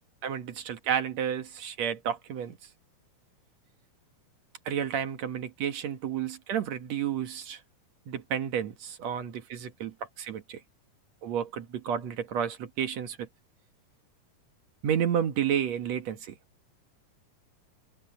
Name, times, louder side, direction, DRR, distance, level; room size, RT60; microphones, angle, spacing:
voice 1, 0.2-2.6 4.7-7.6 8.1-10.6 11.2-13.3 14.8-16.3, right 9 dB, 60° right, 2.5 m, -31 dB
omnidirectional pair, 3.7 m